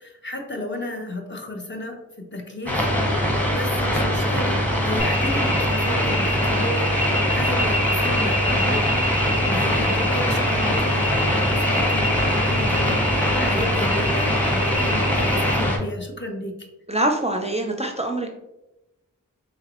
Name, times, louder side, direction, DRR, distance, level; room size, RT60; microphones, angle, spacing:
voice 1, 0.0-2.0 2.3-3.2 3.5-8.8 9.4-16.7, left 1 dB, 35° left, 2 dB, 0.7 m, -33 dB
sound 1, 2.7-15.8, equal, 5° left, 1.0 m, -22 dB
sound 2, 5.0-15.6, left 1 dB, 85° left, 1.1 m, -28 dB
voice 2, 16.9-18.3, right 1 dB, 20° right, 2 dB, 0.4 m, -24 dB
4.0 x 2.9 x 2.9 m, 0.93 s
wide cardioid pair, 50°, 34 cm